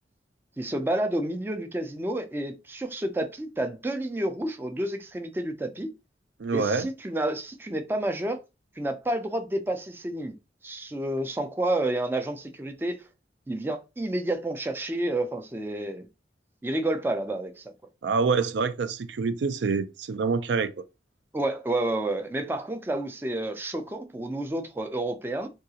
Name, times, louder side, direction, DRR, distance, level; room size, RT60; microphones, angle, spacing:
voice 1, 0.6-5.9 6.5-8.4 8.8-10.4 10.6-13.1 13.5-16.1 16.6-17.7 21.3-25.5, right 1 dB, 10° right, 0.3 m, -30 dB
voice 2, 6.4-6.9 18.0-20.7, right 4 dB, 80° right, 0.4 m, -26 dB
3.7 x 2.3 x 2.7 m
head